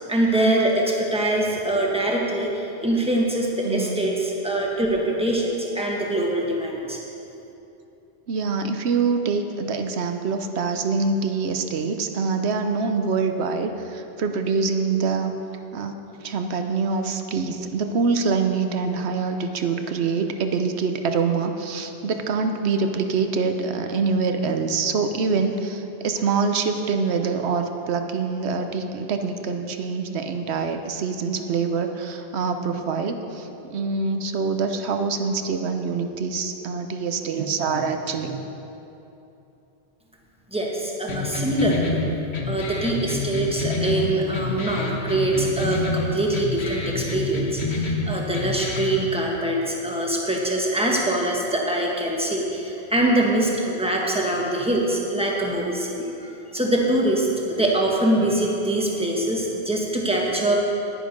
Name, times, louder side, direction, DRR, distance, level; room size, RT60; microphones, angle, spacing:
voice 1, 0.1-7.0 40.5-42.0 42.5-60.6, right 1 dB, 5° right, -2 dB, 1.4 m, -23 dB
voice 2, 3.6-4.0 8.3-15.3 15.7-38.5, right 4 dB, 80° right, 6 dB, 1.0 m, -25 dB
sound 1, 41.1-49.1, left 3 dB, 80° left, 1.3 m, -28 dB
10.0 x 10.0 x 5.2 m, 2.9 s
omnidirectional pair, 1.1 m